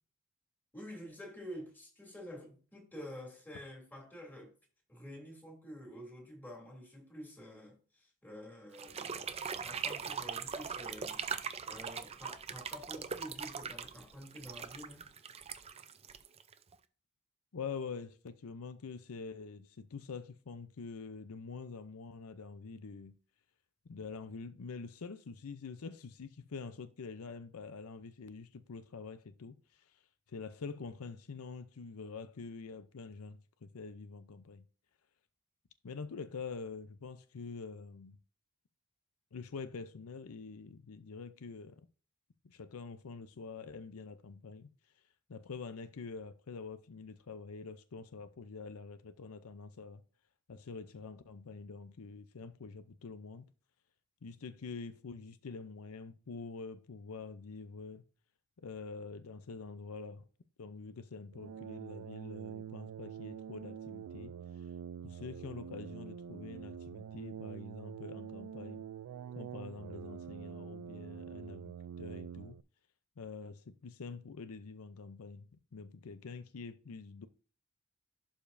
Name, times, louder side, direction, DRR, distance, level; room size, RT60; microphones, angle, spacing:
voice 1, 0.7-4.5 4.9-15.1, equal, 10° left, 2.8 m, -49 dB
sound 1, 8.7-16.7, right 6 dB, 30° right, 0.5 m, -41 dB
voice 2, 17.5-23.1 23.9-30.0 30.3-34.6 35.8-38.2 39.3-41.8 42.4-44.7 45.3-50.0 50.5-53.5 54.2-58.0 58.6-60.3 60.6-64.7 65.0-68.8 69.3-72.6 73.2-77.3, left 4 dB, 80° left, 0.6 m, -46 dB
sound 2, 61.3-72.6, right 8 dB, 85° right, 0.3 m, -46 dB
11.5 x 5.1 x 2.6 m
head